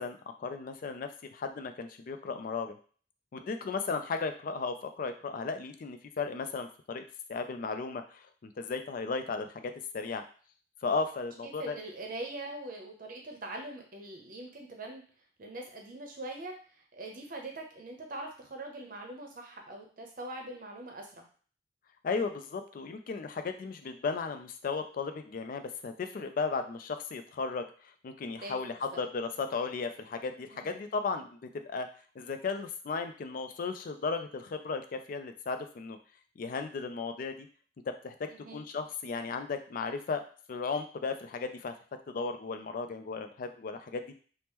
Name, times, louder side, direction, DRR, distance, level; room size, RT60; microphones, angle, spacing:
voice 1, 0.0-2.8 3.3-7.0 7.3-10.2 10.8-11.8 22.0-27.7 28.0-31.9 32.2-36.0 36.4-37.5 37.9-41.7 42.1-44.0, left 4 dB, 50° left, 8 dB, 0.3 m, -35 dB
voice 2, 11.6-15.0 15.4-16.6 16.9-21.3 28.4-29.0 30.5-30.8 38.3-38.6, right 2 dB, 50° right, 2 dB, 0.7 m, -42 dB
2.9 x 2.0 x 3.5 m, 0.42 s
head